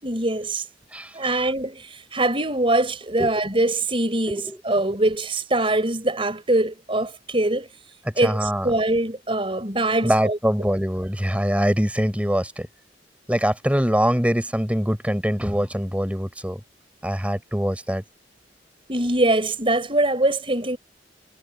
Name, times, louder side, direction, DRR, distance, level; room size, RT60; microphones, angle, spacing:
voice 1, 0.0-0.7 1.1-7.7 8.2-10.4 18.9-20.8, right 2 dB, 30° right, 5.1 m, -23 dB
voice 2, 0.9-1.5 3.2-3.3 4.3-4.6 8.1-8.7 10.0-12.7 13.3-16.6 17.0-18.0, equal, 5° right, 7.2 m, -23 dB
head